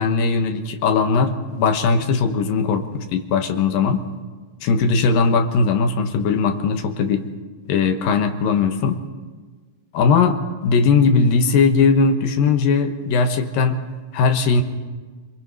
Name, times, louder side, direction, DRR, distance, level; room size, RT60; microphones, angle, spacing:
voice 1, 0.0-4.0 4.6-7.2 7.7-9.0 9.9-13.8 14.1-14.6, left 5 dB, 80° left, 6 dB, 2.9 m, -19 dB
26.0 x 20.5 x 5.4 m, 1.4 s
omnidirectional pair, 4.1 m